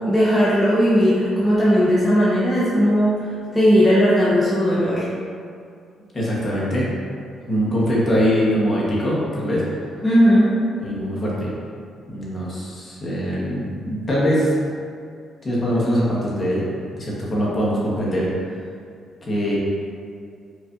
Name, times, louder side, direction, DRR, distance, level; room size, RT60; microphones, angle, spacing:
voice 1, 0.1-3.1 3.5-5.1 10.0-10.6, equal, 10° left, -9 dB, 0.7 m, -17 dB
voice 2, 6.1-6.9 7.5-9.6 10.8-11.5 12.1-14.5 15.4-16.7 17.0-18.3 19.2-19.6, equal, 35° left, -6 dB, 1.1 m, -22 dB
4.7 x 2.5 x 2.6 m, 2.3 s
cardioid pair, 90°, 0 cm